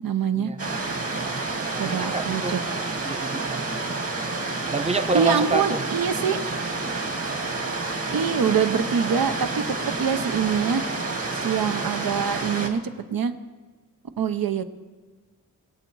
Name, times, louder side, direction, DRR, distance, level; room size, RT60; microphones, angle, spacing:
voice 1, 0.0-0.5 1.8-2.6 5.1-6.4 8.1-9.6 10.0-10.8 11.3-12.8 13.1-13.3 14.2-14.6, right 7 dB, 65° right, 10 dB, 0.9 m, -24 dB
sound 1, 0.6-12.7, right 3 dB, 40° right, 1.7 m, -29 dB
voice 2, 1.7-2.6 3.0-3.7 4.7-5.8, right 3 dB, 15° right, 9 dB, 0.8 m, -27 dB
21.5 x 8.0 x 4.7 m, 1.3 s
wide cardioid pair, 95°, 37 cm